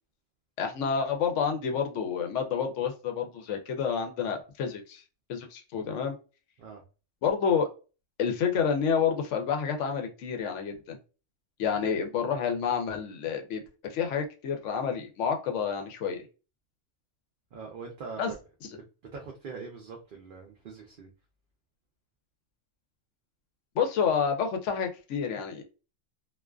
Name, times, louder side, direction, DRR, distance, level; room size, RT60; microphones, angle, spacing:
voice 1, 0.6-5.0 5.3-6.1 7.2-7.7 8.2-11.0 11.6-16.2 18.2-18.3 23.7-25.6, left 6 dB, 75° left, 5 dB, 0.9 m, -29 dB
voice 2, 17.5-18.4 19.1-21.1, right 5 dB, 60° right, 1 dB, 0.6 m, -42 dB
2.4 x 2.3 x 2.2 m, 0.33 s
omnidirectional pair, 1.3 m